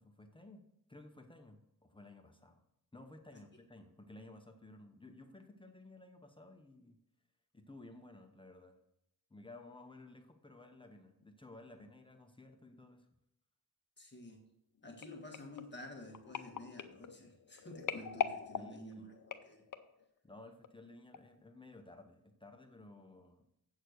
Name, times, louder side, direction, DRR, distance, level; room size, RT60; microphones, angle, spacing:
voice 1, 0.0-2.6 2.9-7.0 7.5-8.8 9.3-13.1 18.5-19.1 20.2-23.5, left 2 dB, 15° left, 4 dB, 0.9 m, -55 dB
voice 2, 14.0-14.4 14.8-19.0 19.4-19.6, left 1 dB, 30° left, 2 dB, 1.5 m, -50 dB
sound 1, 15.0-20.0 20.6-20.9 21.1-21.2, left 7 dB, 55° left, 0.7 m, -42 dB
8.1 x 6.5 x 6.4 m, 0.80 s
wide cardioid pair, 135°, 37 cm